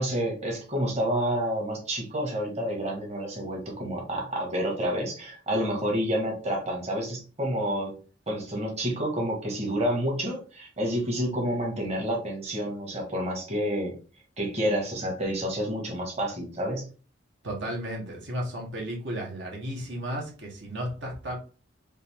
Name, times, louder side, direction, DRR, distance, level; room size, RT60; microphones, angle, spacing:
voice 1, 0.0-7.9 8.3-13.9 14.4-16.9, equal, 35° right, -1 dB, 1.4 m, -29 dB
voice 2, 17.4-21.4, equal, 65° right, -1 dB, 1.4 m, -34 dB
5.2 x 2.6 x 3.5 m, 0.36 s
head